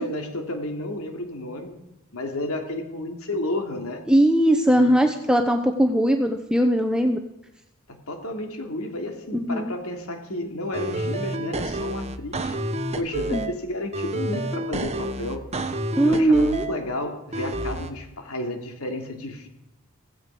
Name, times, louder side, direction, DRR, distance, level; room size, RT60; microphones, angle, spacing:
voice 1, 0.0-1.8 2.1-4.0 4.8-5.0 7.9-12.5 13.0-15.4 16.0-19.5, left 1 dB, 75° left, 4 dB, 3.0 m, -32 dB
voice 2, 4.1-7.2 9.3-9.7 13.3-13.5 16.0-16.7, right 1 dB, 5° right, 5 dB, 0.8 m, -20 dB
sound 1, 10.7-13.5 13.9-16.7 17.3-17.9, right 1 dB, 30° right, 1.1 m, -29 dB
16.0 x 16.0 x 4.9 m, 0.89 s
head